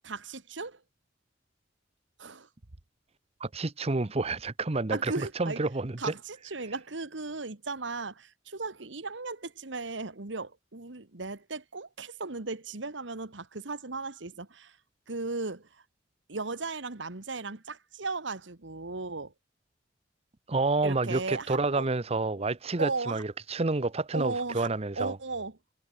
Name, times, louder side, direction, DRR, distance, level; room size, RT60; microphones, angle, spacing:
voice 1, 0.0-0.8 2.2-2.5 4.9-5.6 6.0-14.8 15.1-15.8 16.3-19.3 20.8-21.9 22.8-23.2 24.1-24.7 25.0-25.5, right 3 dB, 80° right, 1.7 m, -36 dB
voice 2, 3.4-5.1 5.4-6.1 20.5-25.2, right 3 dB, 35° right, 0.8 m, -29 dB
head